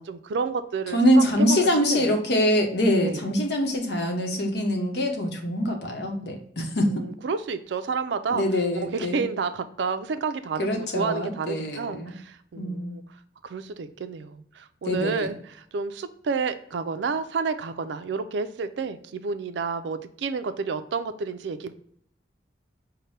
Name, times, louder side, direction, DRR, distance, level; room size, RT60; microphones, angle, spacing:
voice 1, 0.0-2.2 3.0-3.3 6.8-8.5 8.7-13.0 13.4-21.7, right 5 dB, 80° right, 11 dB, 0.4 m, -30 dB
voice 2, 0.9-6.9 8.3-9.2 10.6-12.1 12.5-12.9 14.8-15.3, equal, 65° left, 3 dB, 0.9 m, -24 dB
5.5 x 2.1 x 3.2 m, 0.67 s
head